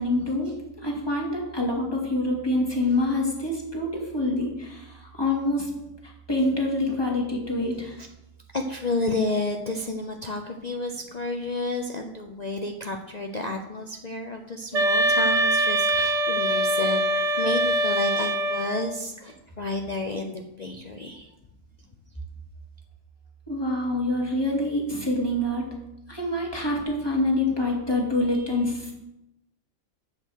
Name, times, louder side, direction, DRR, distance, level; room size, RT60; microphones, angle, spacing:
voice 1, 0.0-4.9 5.1-5.7 6.3-7.9 23.5-25.7 26.1-28.9, left 1 dB, 15° left, -1 dB, 2.2 m, -26 dB
voice 2, 8.5-21.3, left 2 dB, 40° left, 3 dB, 0.6 m, -31 dB
sound 1, 14.7-18.9, right 1 dB, 60° right, 1.3 m, -23 dB
7.8 x 7.3 x 6.4 m, 0.91 s
omnidirectional pair, 1.5 m